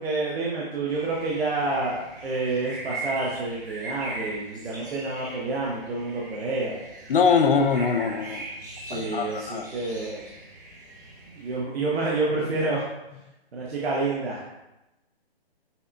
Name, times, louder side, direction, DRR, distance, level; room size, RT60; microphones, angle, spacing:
voice 1, 0.0-6.7 8.9-10.2 11.3-12.8 13.5-14.6, right 3 dB, 75° right, -4 dB, 0.8 m, -28 dB
sound 1, 0.9-11.6, right 2 dB, 20° right, 0.5 m, -40 dB
voice 2, 7.1-8.5 8.9-9.6, left 5 dB, 60° left, 6 dB, 0.5 m, -22 dB
5.5 x 2.2 x 2.5 m, 0.97 s
hypercardioid pair, 160°, 31 cm